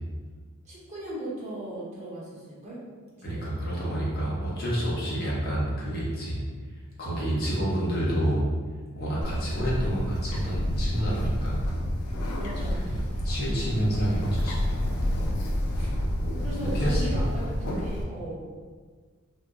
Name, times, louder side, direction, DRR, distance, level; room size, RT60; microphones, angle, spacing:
voice 1, 0.6-2.8 3.3-3.5 12.3-12.8 16.3-18.4, right 1 dB, 35° right, -7 dB, 0.8 m, -37 dB
voice 2, 3.2-6.4 7.0-8.4 8.9-11.6 12.7-13.0 13.2-14.9 15.8-15.9 16.6-17.2, right 1 dB, 45° left, -7 dB, 0.8 m, -28 dB
Bird, 9.2-18.0, left 1 dB, 90° left, 0.4 m, -29 dB
2.2 x 2.0 x 3.5 m, 1.5 s
head